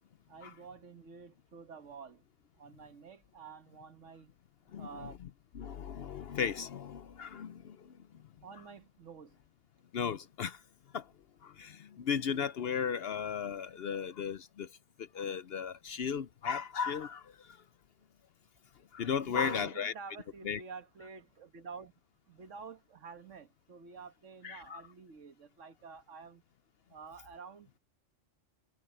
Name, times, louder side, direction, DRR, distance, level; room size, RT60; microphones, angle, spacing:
voice 1, 0.3-2.2 2.6-4.3 4.8-5.2 8.4-9.4 19.2-21.9 22.3-26.4 26.9-27.8, right 5 dB, 75° right, 1.6 m, -49 dB
voice 2, 4.7-5.1 5.5-7.9 9.9-10.6 10.9-11.0 11.4-14.7 15.0-17.3 18.9-19.9 20.4-20.6 24.4-24.8, left 7 dB, 60° left, 0.8 m, -35 dB
omnidirectional pair, 1.3 m